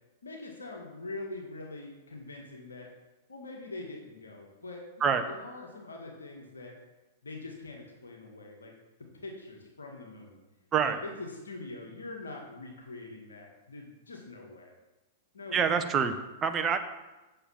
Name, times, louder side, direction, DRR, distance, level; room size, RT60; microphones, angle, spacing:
voice 1, 0.2-2.9 3.3-6.8 7.2-8.7 9.2-10.4 10.8-14.7 15.3-16.2, left 2 dB, 85° left, 0 dB, 1.8 m, -43 dB
voice 2, 15.5-16.8, right 6 dB, 25° right, 7 dB, 1.0 m, -26 dB
9.0 x 6.7 x 5.8 m, 1.1 s
hypercardioid pair, 105°, 0 cm